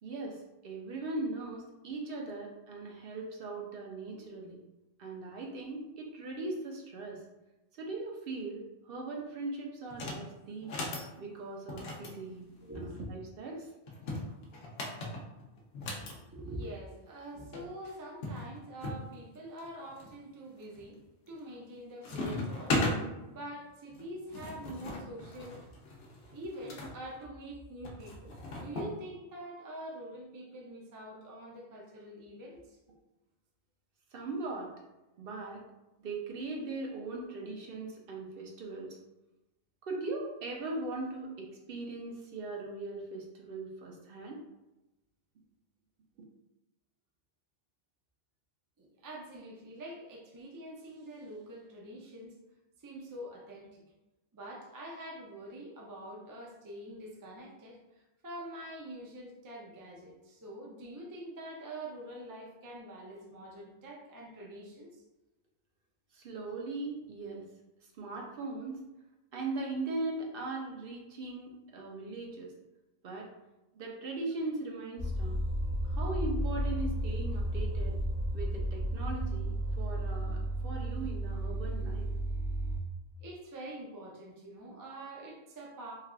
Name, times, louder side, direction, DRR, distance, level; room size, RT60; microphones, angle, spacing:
voice 1, 0.0-4.6 5.0-7.2 7.8-10.7 11.2-12.5 12.7-13.7 34.1-34.7 35.2-35.6 36.0-39.0 39.8-44.4 66.1-67.4 68.0-68.8 69.3-72.5 73.0-73.3 73.7-75.4 75.8-77.9 78.3-82.1, right 2 dB, 65° right, 0 dB, 0.7 m, -39 dB
sound 1, 9.9-10.2 10.6-11.1 11.7-13.1 13.9-16.1 17.2-17.3 17.5-17.6 18.2-19.0 19.6-20.1 20.6-21.0 21.3-21.7 22.0-23.0 23.9-26.9 27.8-28.9, left 2 dB, 70° left, 0.8 m, -37 dB
voice 2, 12.6-13.1 15.9-21.0 21.3-25.7 26.3-32.8 48.8-52.3 52.8-53.8 54.3-65.0 83.2-85.9, right 1 dB, 35° right, -2 dB, 0.3 m, -45 dB
sound 2, 75.0-82.8, right 1 dB, 10° right, 0.8 m, -33 dB
3.2 x 2.3 x 2.3 m, 0.99 s
omnidirectional pair, 1.1 m